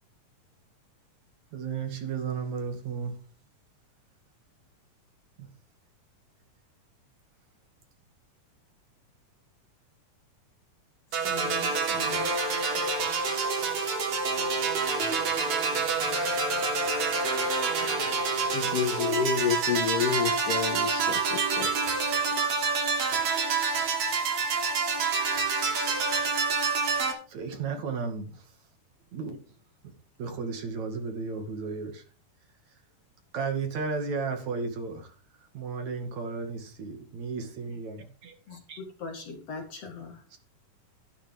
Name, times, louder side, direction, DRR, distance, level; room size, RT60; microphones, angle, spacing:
voice 1, 1.5-3.2 26.8-26.9 27.3-28.4 29.1-29.4 29.8-29.9 30.2-32.0 33.3-35.1 35.5-38.3 38.7-38.8 40.3-40.4, right 5 dB, 60° right, 5 dB, 3.5 m, -34 dB
voice 2, 11.1-12.3 38.5-40.2, left 4 dB, 55° left, 4 dB, 2.9 m, -41 dB
sound 1, 11.1-27.1, right 4 dB, 90° right, 4.7 m, -27 dB
voice 3, 18.5-21.7, left 8 dB, 85° left, 10 dB, 2.9 m, -29 dB
13.0 x 11.5 x 3.7 m, 0.38 s
omnidirectional pair, 3.7 m